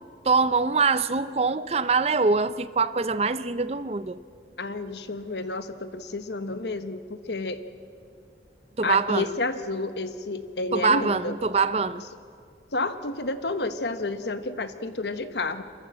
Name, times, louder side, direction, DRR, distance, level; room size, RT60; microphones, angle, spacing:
voice 1, 0.2-4.2 8.8-9.3 10.7-12.0, right 4 dB, 35° right, 0.5 m, -24 dB
voice 2, 4.6-7.6 8.8-11.3 12.7-15.6, left 2 dB, 75° left, 1.1 m, -30 dB
27.0 x 14.5 x 7.8 m
head